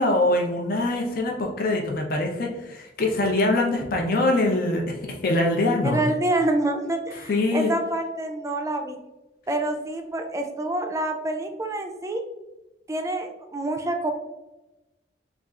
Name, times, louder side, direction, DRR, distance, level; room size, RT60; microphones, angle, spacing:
voice 1, 0.0-6.0 7.1-7.7, left 2 dB, 55° left, 1 dB, 0.5 m, -23 dB
voice 2, 5.8-9.0 9.5-12.2 12.9-14.1, right 1 dB, 20° right, 4 dB, 0.4 m, -27 dB
4.0 x 2.4 x 2.3 m, 1.0 s
head